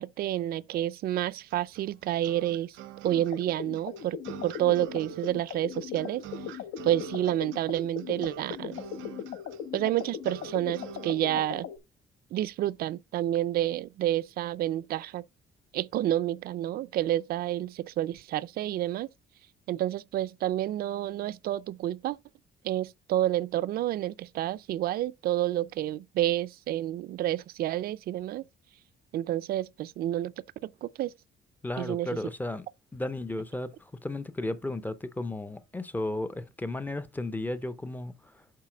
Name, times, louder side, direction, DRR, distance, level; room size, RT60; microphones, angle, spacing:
voice 1, 0.0-2.8 3.0-4.2 4.4-6.2 6.8-8.8 9.7-11.7 12.3-15.2 15.7-19.1 19.7-22.2 22.6-28.4 29.1-30.3 30.6-31.1 31.8-32.1, right 13 dB, 50° right, 0.4 m, -29 dB
sound 1, 1.5-11.1, right 11 dB, 85° right, 0.8 m, -46 dB
sound 2, 3.1-11.8, left 9 dB, 90° left, 0.9 m, -39 dB
voice 2, 31.6-32.7 32.9-38.4, left 2 dB, 10° left, 0.4 m, -34 dB
7.5 x 4.5 x 4.8 m
cardioid pair, 175°, 20 cm